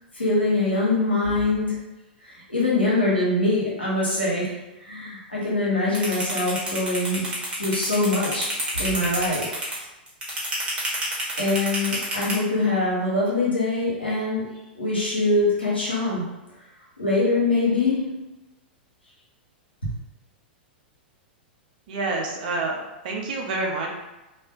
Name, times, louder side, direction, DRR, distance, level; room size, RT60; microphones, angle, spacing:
voice 1, 0.1-1.8 2.2-7.3 7.6-9.5 10.9-11.0 11.4-14.4 14.7-16.3 17.0-18.2 19.8-19.9, left 2 dB, 90° left, -7 dB, 1.0 m, -23 dB
sound 1, 5.9-12.3, right 1 dB, 20° right, 0.9 m, -28 dB
voice 2, 21.9-23.9, right 3 dB, 55° right, -1 dB, 0.6 m, -28 dB
2.5 x 2.1 x 2.3 m, 1.0 s
figure-of-eight pair, 100°, 6 cm